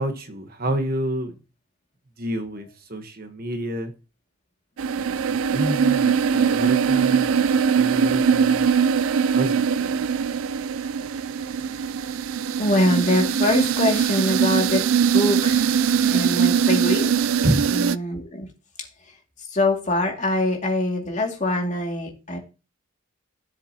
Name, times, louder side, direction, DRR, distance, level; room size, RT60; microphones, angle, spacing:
voice 1, 0.0-1.3 2.2-3.9 5.0-8.7 9.3-10.0 17.4-17.7, right 1 dB, 40° right, 1.3 m, -29 dB
sound 1, 4.8-18.0, right 7 dB, 65° right, 0.4 m, -21 dB
voice 2, 12.6-15.7 16.0-17.3 17.7-18.5 18.8-22.4, left 1 dB, 35° left, 2.4 m, -24 dB
17.0 x 7.4 x 2.9 m
head